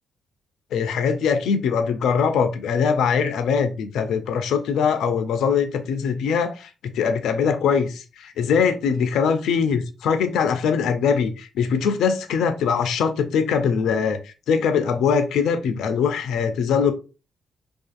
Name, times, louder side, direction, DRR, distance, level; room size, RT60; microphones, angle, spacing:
voice 1, 0.7-16.9, left 6 dB, 70° left, 0.3 m, -22 dB
2.5 x 2.3 x 2.4 m
hypercardioid pair, 40°, 0 cm